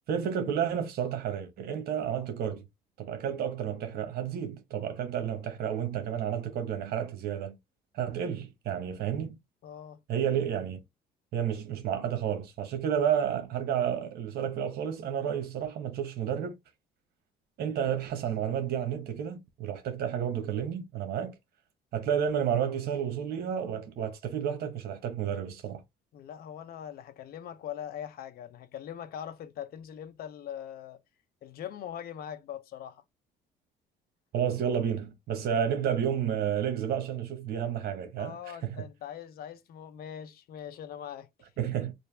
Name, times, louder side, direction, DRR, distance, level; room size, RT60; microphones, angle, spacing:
voice 1, 0.1-2.6 3.0-7.6 7.9-9.4 10.1-10.8 11.3-16.6 17.6-21.3 21.9-25.8 34.3-38.4 38.6-38.7 41.6-41.9, right 8 dB, 65° right, 1.1 m, -31 dB
voice 2, 9.6-10.0 26.1-31.0 31.4-33.0 38.2-41.3 41.6-41.7, left 9 dB, 65° left, 0.7 m, -41 dB
3.3 x 2.6 x 3.3 m
cardioid pair, 110°, 17 cm